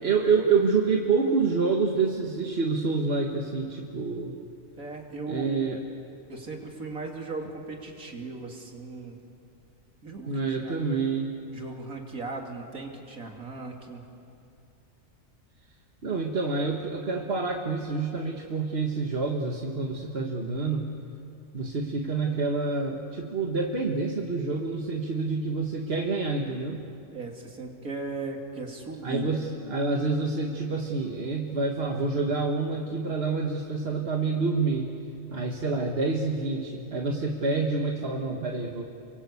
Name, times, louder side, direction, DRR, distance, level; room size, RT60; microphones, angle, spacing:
voice 1, 0.0-4.3 5.3-5.8 10.3-11.3 16.0-20.9 21.5-26.8 29.0-34.9 35.3-38.8, right 4 dB, 45° right, 1 dB, 1.7 m, -27 dB
voice 2, 4.8-5.6 6.3-9.2 10.0-10.8 11.5-14.0 27.1-29.3, right 3 dB, 90° right, 1 dB, 3.4 m, -37 dB
29.0 x 23.5 x 8.4 m, 2.6 s
omnidirectional pair, 1.4 m